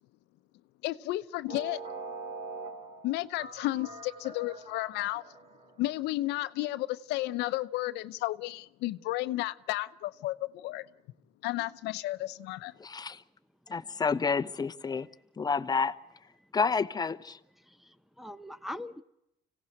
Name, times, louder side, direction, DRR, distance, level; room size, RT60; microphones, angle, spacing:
voice 1, 0.8-1.8 3.0-5.2 5.8-10.9 11.4-12.7, left 17 dB, 90° left, 0.8 m, -32 dB
sound 1, 1.5-6.0, right 3 dB, 35° right, 3.6 m, -43 dB
voice 2, 12.8-13.2 13.7-15.1 15.4-16.0 16.5-17.4, left 5 dB, 25° left, 0.9 m, -29 dB
voice 3, 17.6-19.0, left 1 dB, ahead, 0.9 m, -42 dB
25.5 x 17.5 x 7.8 m
cardioid pair, 110°, 17 cm